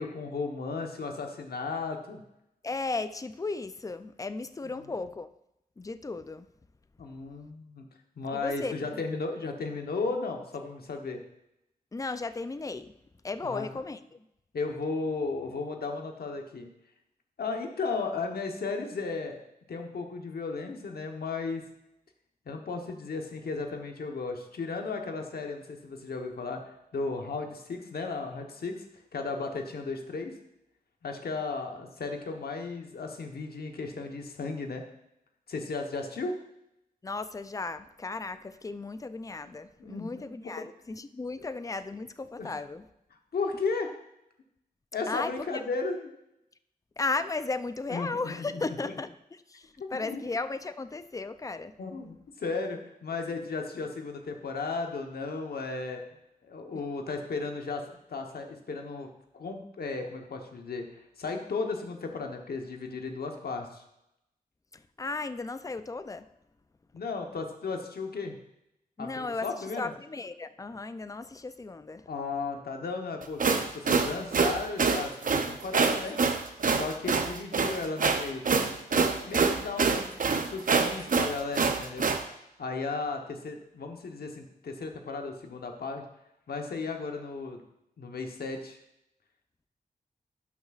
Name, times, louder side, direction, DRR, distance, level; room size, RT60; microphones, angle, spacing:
voice 1, 0.0-2.2 4.6-4.9 7.0-7.9 8.2-11.2 13.4-13.7 14.5-16.7 17.4-19.4 19.7-21.6 22.5-28.9 29.1-30.4 31.0-34.8 35.5-36.4 39.8-40.7 41.4-41.5 42.4-42.5 43.3-43.9 44.9-46.1 47.9-48.9 49.8-50.2 51.8-56.0 56.4-59.1 59.3-63.8 66.9-68.4 69.0-69.9 72.1-76.2 76.7-80.1 80.4-82.1 82.6-86.0 86.5-87.6 88.0-88.8, left 4 dB, 75° left, 3 dB, 1.1 m, -35 dB
voice 2, 2.6-5.3 5.8-6.5 8.3-8.7 11.9-12.9 13.2-14.0 37.0-42.9 45.1-45.6 47.0-51.8 64.7-66.3 69.0-69.5 69.8-72.1, left 3 dB, 20° left, 12 dB, 0.4 m, -35 dB
sound 1, 73.2-82.2, right 5 dB, 55° right, 0.7 m, -26 dB
11.5 x 6.1 x 2.5 m, 0.84 s
wide cardioid pair, 75°, 16 cm